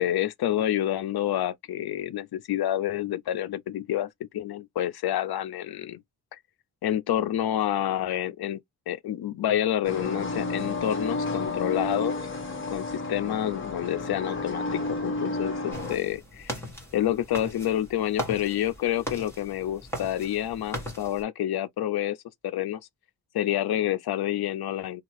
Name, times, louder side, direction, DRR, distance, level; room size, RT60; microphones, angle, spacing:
voice 1, 0.0-6.0 6.8-8.6 8.9-12.2 12.7-16.6 16.9-22.2 22.4-22.8 23.3-25.0, left 12 dB, 65° left, 0.5 m, -28 dB
sound 1, 9.8-16.0, left 2 dB, 30° left, 1.1 m, -31 dB
sound 2, 15.7-21.2, equal, 5° left, 1.3 m, -38 dB
2.9 x 2.4 x 2.8 m
wide cardioid pair, 130°, 41 cm